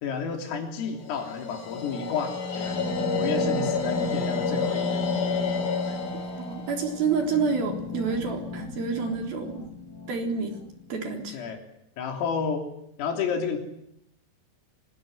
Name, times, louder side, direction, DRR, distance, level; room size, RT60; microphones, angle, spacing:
voice 1, 0.0-5.1 5.9-6.0 11.3-11.6 12.0-12.7 13.0-13.6, left 6 dB, 85° left, 4 dB, 6.0 m, -31 dB
sound 1, 1.0-8.1, left 4 dB, 45° left, 5.2 m, -30 dB
sound 2, 2.6-11.6, equal, 20° left, 5.4 m, -38 dB
voice 2, 6.4-9.7 10.1-10.6 10.9-11.4, right 5 dB, 50° right, 3 dB, 5.0 m, -28 dB
26.0 x 20.0 x 9.6 m, 0.78 s
omnidirectional pair, 5.9 m